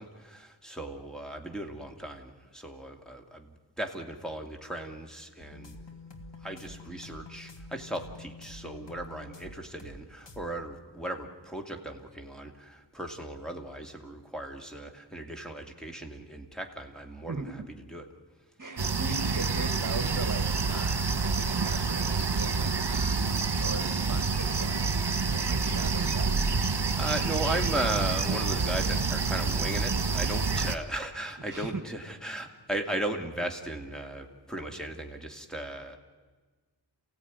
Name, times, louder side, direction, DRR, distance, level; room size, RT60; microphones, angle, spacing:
voice 1, 0.0-5.8 6.4-17.6 17.9-18.0 26.7-36.0, right 1 dB, ahead, 1 dB, 2.5 m, -37 dB
sound 1, 5.4-10.0 10.3-10.4, left 2 dB, 70° left, 1.9 m, -47 dB
voice 2, 18.6-26.5 31.5-31.8, right 3 dB, 45° right, 6 dB, 1.8 m, -39 dB
sound 2, 18.8-30.8, right 4 dB, 65° right, 1.5 m, -28 dB
28.5 x 16.5 x 9.6 m, 1.4 s
wide cardioid pair, 50°, 44 cm